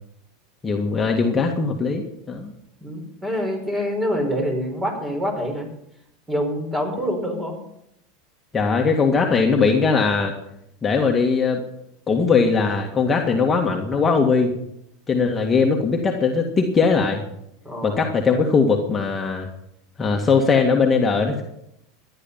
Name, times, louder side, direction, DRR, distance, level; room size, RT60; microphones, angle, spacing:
voice 1, 0.6-2.5 8.5-10.3 10.8-11.6 12.1-14.6 15.1-17.2 17.8-19.5 20.0-21.4, left 4 dB, 20° left, 1 dB, 2.0 m, -20 dB
voice 2, 2.8-5.7 6.3-7.6 17.6-18.1, equal, 15° right, 4 dB, 5.5 m, -26 dB
16.0 x 10.5 x 5.7 m, 0.78 s
hypercardioid pair, 110°, 0 cm